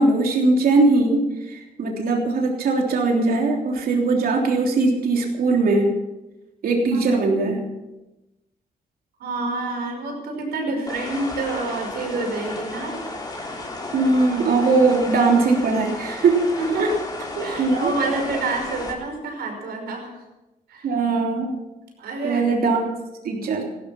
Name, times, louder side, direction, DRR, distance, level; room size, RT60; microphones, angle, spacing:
voice 1, 0.0-5.9 6.6-7.6 13.9-16.5 16.8-16.9 17.6-17.9 20.8-21.5 22.2-22.9 23.2-23.6, right 3 dB, 70° right, 1 dB, 3.3 m, -20 dB
voice 2, 9.2-13.0 16.6-17.0 17.4-20.2 20.7-20.9 22.0-22.4, right 3 dB, 90° right, 2 dB, 5.4 m, -28 dB
sound 1, 10.9-18.9, left 2 dB, 25° left, 3.7 m, -33 dB
16.5 x 13.5 x 5.8 m, 1.0 s
cardioid pair, 85°, 16 cm